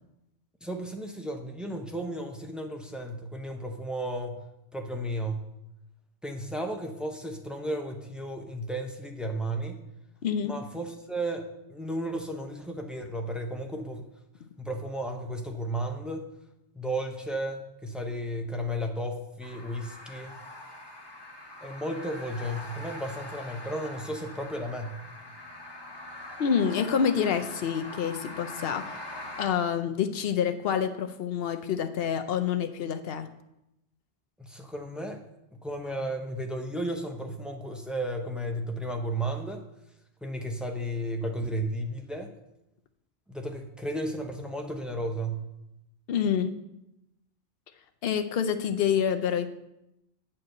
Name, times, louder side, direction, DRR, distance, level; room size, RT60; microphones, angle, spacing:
voice 1, 0.6-4.4 4.7-5.5 6.2-9.8 10.4-14.0 14.6-16.2 16.7-20.3 21.6-25.0 34.4-35.2 35.6-39.6 40.2-42.3 43.3-45.5, right 1 dB, ahead, 3 dB, 0.7 m, -34 dB
voice 2, 10.2-10.6 26.4-29.1 29.4-33.3 46.1-46.5 48.0-49.5, left 7 dB, 65° left, 8 dB, 0.9 m, -27 dB
sound 1, 19.4-29.5, left 1 dB, 25° left, 1.1 m, -43 dB
8.7 x 4.4 x 6.5 m, 0.86 s
omnidirectional pair, 1.1 m